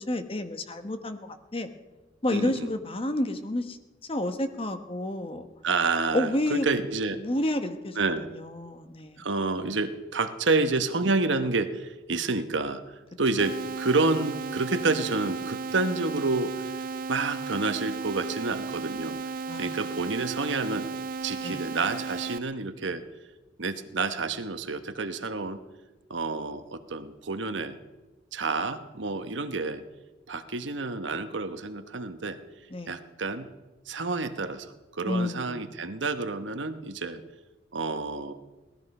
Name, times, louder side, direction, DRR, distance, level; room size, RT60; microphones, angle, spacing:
voice 1, 0.1-1.7 2.2-3.8 4.1-5.5 6.1-6.7 7.2-8.0 8.3-9.2 19.5-19.8 21.4-21.6 32.7-33.0 35.0-35.8, left 1 dB, 30° left, 8 dB, 1.1 m, -30 dB
voice 2, 2.3-2.7 5.6-7.2 8.0-8.3 9.2-12.8 13.2-16.5 17.1-19.2 19.6-20.9 21.2-23.0 23.6-25.6 26.1-27.8 28.3-29.8 30.3-32.4 32.9-33.5 33.9-37.2 37.7-38.3, right 3 dB, 80° right, 10 dB, 1.1 m, -29 dB
sound 1, 13.4-22.4, right 4 dB, 50° right, 0.5 m, -35 dB
18.5 x 13.5 x 5.4 m, 1.1 s
head